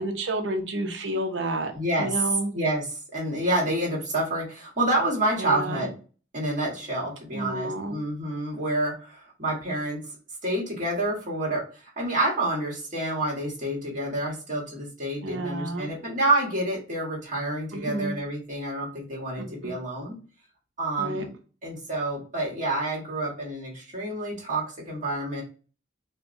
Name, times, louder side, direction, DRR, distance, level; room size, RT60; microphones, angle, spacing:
voice 1, 0.0-1.7 2.0-2.5 5.4-5.9 7.3-8.0 15.2-15.9 17.7-18.1 19.4-19.7 21.0-21.3, right 1 dB, 85° right, 5 dB, 0.7 m, -30 dB
voice 2, 1.7-2.1 2.5-2.8 3.1-5.9 6.3-10.0 10.4-20.2 20.8-21.3 21.6-25.4, right 1 dB, 45° right, -3 dB, 1.4 m, -28 dB
4.4 x 2.2 x 2.5 m, 0.37 s
head